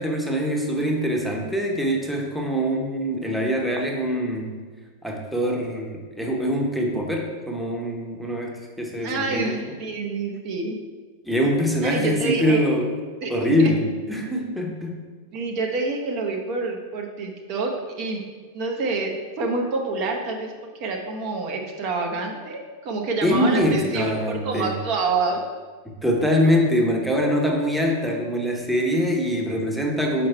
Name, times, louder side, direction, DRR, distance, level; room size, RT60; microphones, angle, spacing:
voice 1, 0.0-4.6 5.0-9.6 11.2-12.9 13.3-14.9 23.2-24.8 26.0-30.3, equal, 5° right, 0 dB, 0.9 m, -23 dB
voice 2, 9.0-10.8 11.8-12.6 13.2-13.7 15.3-18.2 18.5-19.1 19.4-25.4, right 3 dB, 40° right, 1 dB, 0.8 m, -27 dB
6.0 x 4.7 x 4.4 m, 1.4 s
figure-of-eight pair, 90°, 0 cm